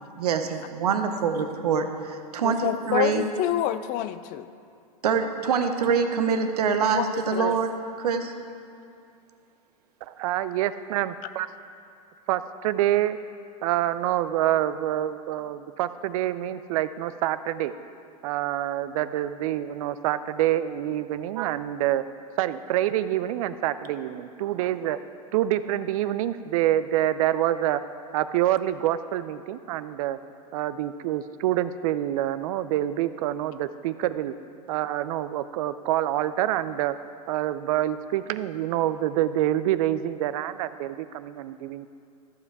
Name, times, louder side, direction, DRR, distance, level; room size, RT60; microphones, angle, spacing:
voice 1, 0.2-3.3 5.0-7.7 8.0-8.3, right 6 dB, 80° right, 7 dB, 0.8 m, -25 dB
voice 2, 2.4-4.5 6.9-7.6, left 13 dB, 45° left, 13 dB, 0.4 m, -28 dB
voice 3, 10.0-11.5 12.3-13.2 13.6-17.7 18.2-22.0 22.4-25.0 25.3-27.8 28.1-30.2 30.5-34.3 34.7-36.9 37.3-41.9, right 13 dB, 60° right, 13 dB, 0.5 m, -26 dB
14.0 x 5.5 x 4.7 m, 2.5 s
hypercardioid pair, 100°, 20 cm